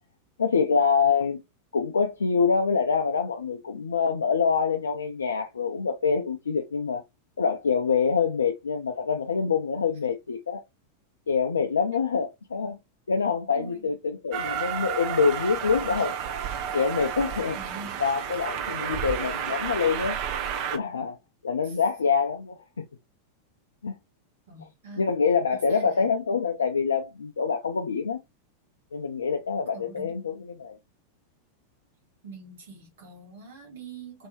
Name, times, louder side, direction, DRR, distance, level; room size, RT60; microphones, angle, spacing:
voice 1, 0.4-1.4 1.7-7.0 7.4-10.6 11.3-12.8 13.1-16.1 16.7-17.6 18.0-20.2 20.7-21.2 21.4-22.9 23.8-23.9 25.0-28.2 28.9-30.8, left 5 dB, 70° left, 0.3 m, -25 dB
voice 2, 13.5-13.9 17.5-18.0 21.6-21.8 24.5-25.0 25.7-26.1 29.7-30.2 32.2-34.3, right 3 dB, 60° right, 1.3 m, -44 dB
Train, 14.3-20.8, right 8 dB, 45° right, 0.5 m, -31 dB
2.7 x 2.6 x 2.9 m
figure-of-eight pair, 90°, 0 cm